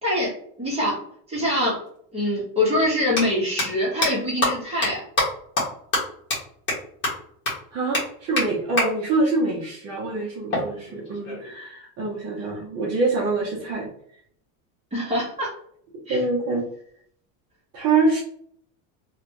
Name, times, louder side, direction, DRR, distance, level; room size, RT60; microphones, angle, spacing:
voice 1, 0.0-0.3 0.6-1.0 1.3-1.8 2.1-5.0 14.9-15.5 16.1-16.2, left 1 dB, 15° right, -5 dB, 1.2 m, -24 dB
sound 1, 1.9-2.0 3.0-3.2 3.6-3.7 4.0-4.1 4.4-4.5 4.8-4.9 5.2-5.3 5.6-5.7 5.9-6.0 6.3-6.4 6.7-6.8 7.0-7.1 7.4-7.5 7.9-8.0 8.4-8.5 8.8-8.9 10.5-11.5, left 1 dB, 25° left, 1.4 m, -23 dB
voice 2, 7.7-13.9 16.1-16.6 17.7-18.2, right 3 dB, 35° right, -3 dB, 0.8 m, -25 dB
3.0 x 2.4 x 2.9 m, 0.63 s
cardioid pair, 150°, 42 cm